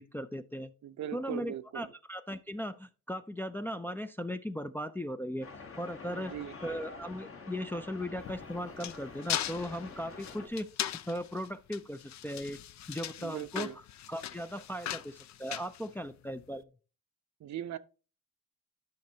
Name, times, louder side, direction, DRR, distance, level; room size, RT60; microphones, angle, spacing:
voice 1, 0.0-0.7 1.1-5.5 5.8-6.3 6.6-10.7 11.1-12.6 12.9-13.7 14.1-16.6, equal, 5° left, 0.3 m, -37 dB
voice 2, 0.8-1.9 6.0-6.5 13.2-13.8 17.4-17.8, right 11 dB, 65° right, 0.6 m, -40 dB
sound 1, 5.4-10.5, left 4 dB, 45° left, 1.2 m, -47 dB
sound 2, 8.2-16.4, left 11 dB, 65° left, 0.5 m, -39 dB
10.5 x 5.9 x 2.8 m
cardioid pair, 110°, 31 cm